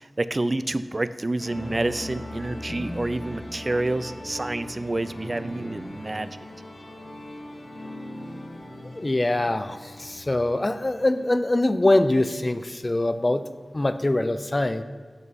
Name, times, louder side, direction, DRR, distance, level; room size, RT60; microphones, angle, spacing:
voice 1, 0.0-6.3, right 2 dB, 35° right, 14 dB, 0.3 m, -28 dB
sound 1, 1.4-11.3, left 1 dB, 65° left, 1.7 m, -39 dB
voice 2, 8.9-13.5 13.7-14.8, left 2 dB, 30° left, 11 dB, 0.4 m, -23 dB
7.7 x 6.0 x 5.5 m, 1.5 s
wide cardioid pair, 75°, 0 cm